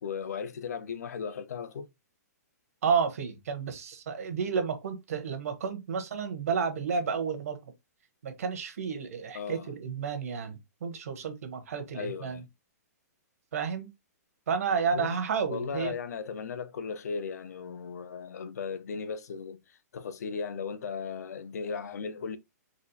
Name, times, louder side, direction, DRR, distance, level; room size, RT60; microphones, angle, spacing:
voice 1, 0.0-1.9 9.3-9.7 11.9-12.5 14.9-15.2 15.5-22.4, left 6 dB, 70° left, 0.5 m, -36 dB
voice 2, 2.8-7.6 8.2-12.4 13.5-13.9 14.5-15.9, right 6 dB, 60° right, 0.9 m, -31 dB
4.1 x 2.4 x 2.7 m
hypercardioid pair, 175°, 9 cm